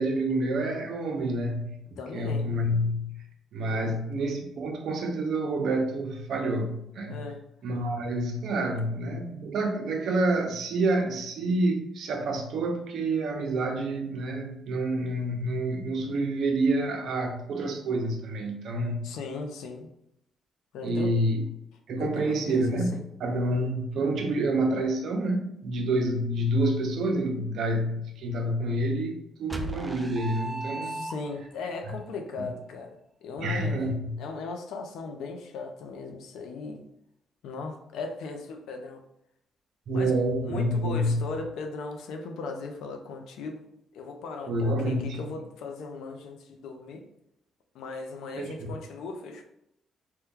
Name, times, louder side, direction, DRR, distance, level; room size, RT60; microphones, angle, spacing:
voice 1, 0.0-1.8 2.1-3.1 3.5-7.2 7.6-19.0 20.8-21.4 21.9-31.0 31.9-32.0 33.4-34.1 39.9-41.2 44.5-45.2 48.4-48.7, right 1 dB, 70° right, 3 dB, 0.6 m, -28 dB
voice 2, 2.0-2.6 3.7-4.0 7.1-7.4 19.0-19.9 20.7-21.1 22.0-23.1 30.8-33.8 34.2-36.8 37.4-39.0 39.9-43.6 43.9-47.0 47.7-49.4, left 3 dB, 85° left, 4 dB, 0.5 m, -38 dB
sound 1, 29.5-31.6, right 1 dB, 15° right, 0.4 m, -35 dB
2.9 x 2.2 x 3.5 m, 0.79 s
cardioid pair, 90°, 0 cm